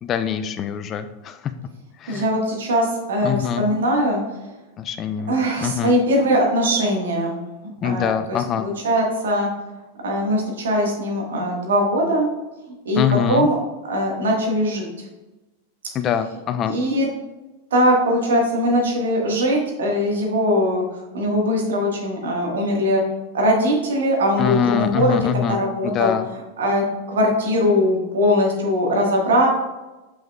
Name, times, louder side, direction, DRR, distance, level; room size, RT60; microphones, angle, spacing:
voice 1, 0.0-1.5 2.0-2.3 3.2-3.7 4.8-6.0 7.8-8.7 13.0-13.5 15.9-16.8 24.4-26.3, left 8 dB, 30° left, 10 dB, 0.4 m, -24 dB
voice 2, 2.1-4.2 5.3-7.4 7.8-8.4 8.8-9.5 10.0-12.3 12.8-13.0 13.3-13.6 13.9-14.9 16.7-17.1 17.7-20.9 21.1-23.0 23.3-26.1 26.6-29.5, equal, 65° right, 0 dB, 1.5 m, -20 dB
6.6 x 6.1 x 2.4 m, 1.1 s
figure-of-eight pair, 90°, 0 cm